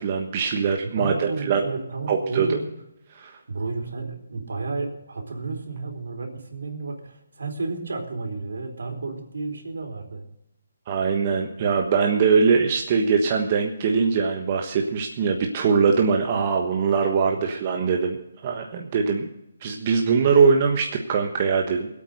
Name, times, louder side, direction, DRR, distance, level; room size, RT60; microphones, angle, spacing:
voice 1, 0.0-1.6 2.1-2.6 3.2-3.3 10.9-18.2 18.4-19.3 19.6-21.9, right 5 dB, 35° right, 2 dB, 1.3 m, -22 dB
voice 2, 1.0-2.6 3.5-10.2 17.3-17.4, right 3 dB, 75° right, 3 dB, 4.2 m, -32 dB
18.5 x 8.7 x 6.6 m, 0.81 s
hypercardioid pair, 160°, 0 cm